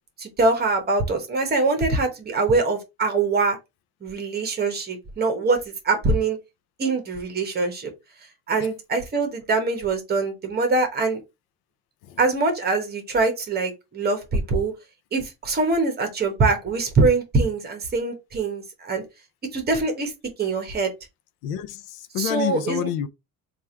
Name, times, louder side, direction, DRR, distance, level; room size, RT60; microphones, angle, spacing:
voice 1, 0.2-3.6 4.0-6.4 6.8-7.9 8.5-11.2 12.2-14.7 15.1-19.0 19.5-20.1 20.4-20.9 22.2-22.9, right 3 dB, 25° right, 1.1 m, -23 dB
voice 2, 21.4-23.1, left 10 dB, 80° left, 0.6 m, -28 dB
3.4 x 2.5 x 4.3 m
cardioid pair, 165°, 37 cm